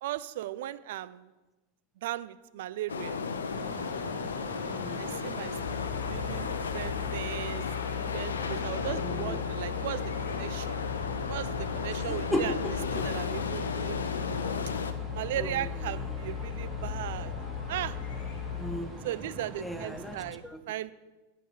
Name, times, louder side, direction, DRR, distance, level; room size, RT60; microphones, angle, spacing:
voice 1, 0.0-1.2 2.0-3.2 5.0-5.8 6.1-7.6 8.1-10.7 11.3-12.6 12.9-14.6 15.1-17.3 17.7-18.0 19.0-20.9, right 13 dB, 55° right, 15 dB, 0.3 m, -37 dB
sound 1, 2.9-14.9, left 5 dB, 70° left, 0.6 m, -34 dB
sound 2, 3.5-20.3, right 1 dB, 20° right, 1.5 m, -44 dB
voice 2, 4.7-5.2 8.8-9.4 12.1-13.0 15.4-15.7 18.5-18.9 19.6-20.2 20.4-20.6, equal, ahead, 7 dB, 0.7 m, -36 dB
sound 3, 5.5-18.8, left 9 dB, 55° left, 1.8 m, -37 dB
9.0 x 6.6 x 5.7 m, 1.1 s
figure-of-eight pair, 90°, 0 cm